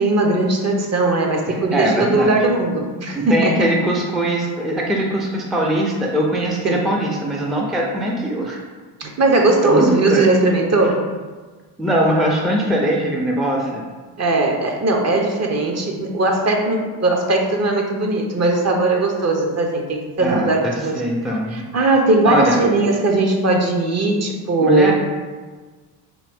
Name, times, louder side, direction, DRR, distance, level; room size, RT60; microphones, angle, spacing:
voice 1, 0.0-3.6 6.6-6.9 9.0-11.0 14.2-21.0 21.5-24.9, right 2 dB, 35° right, 2 dB, 0.7 m, -18 dB
voice 2, 1.4-2.4 3.1-8.6 9.6-10.3 11.8-13.9 20.2-21.6 22.2-22.6 24.6-24.9, right 1 dB, ahead, -1 dB, 0.4 m, -21 dB
3.8 x 2.6 x 3.4 m, 1.4 s
supercardioid pair, 70°, 46 cm